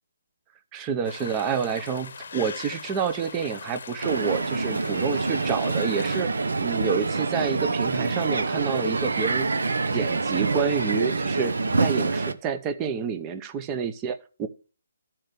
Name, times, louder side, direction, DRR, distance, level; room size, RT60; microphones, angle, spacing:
voice 1, 0.7-6.3 6.6-9.5 9.9-14.5, right 6 dB, 15° right, 9 dB, 0.6 m, -28 dB
sound 1, 1.0-6.2, left 5 dB, 50° left, 0.8 m, -40 dB
Crowd, 4.0-12.3, right 3 dB, 75° right, 1.0 m, -26 dB
13.0 x 4.4 x 6.6 m, 0.37 s
hypercardioid pair, 170°, 0 cm